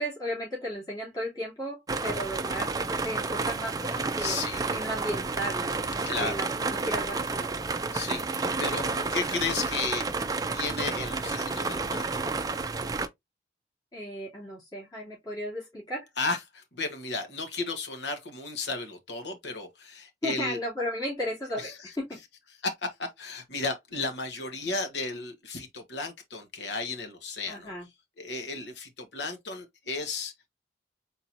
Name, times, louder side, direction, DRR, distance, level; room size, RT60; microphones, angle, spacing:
voice 1, 0.0-4.4 4.7-5.9 6.2-7.5 13.9-16.1 20.2-22.2 27.5-27.9, equal, 20° left, 2.7 m, -35 dB
sound 1, 1.9-13.1, right 3 dB, 20° right, 0.4 m, -30 dB
voice 2, 4.2-4.8 6.1-6.3 7.9-10.1 10.5-12.2 16.2-20.6 21.6-21.9 22.6-27.7 28.2-30.3, left 3 dB, 80° left, 1.3 m, -34 dB
4.4 x 3.8 x 2.6 m
head